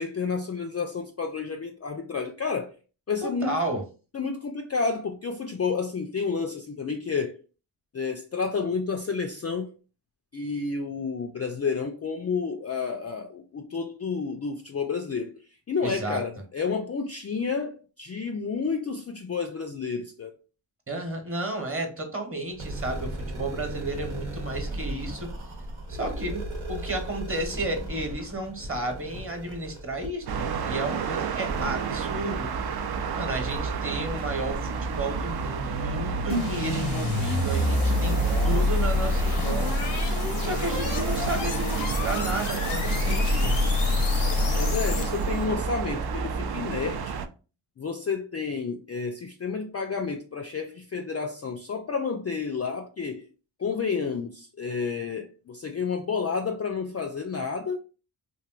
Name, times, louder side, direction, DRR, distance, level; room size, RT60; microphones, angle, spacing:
voice 1, 0.0-2.7 3.1-3.5 4.1-7.4 7.9-9.7 10.3-15.4 15.7-20.3 44.6-47.1 47.8-53.3 53.6-57.8, left 5 dB, 35° left, 0.4 m, -30 dB
voice 2, 3.2-3.8 15.8-16.2 20.9-25.3 25.9-32.8 33.1-39.8 40.4-43.6, right 1 dB, 25° right, 1.0 m, -33 dB
sound 1, 22.5-32.9 33.5-33.6 34.1-34.2 34.5-34.6, right 1 dB, 75° right, 1.0 m, -37 dB
sound 2, 30.3-47.3, right 5 dB, 50° right, 0.5 m, -30 dB
sound 3, 36.3-45.4, left 3 dB, 85° left, 0.8 m, -26 dB
3.1 x 2.6 x 2.4 m
cardioid pair, 40°, 50 cm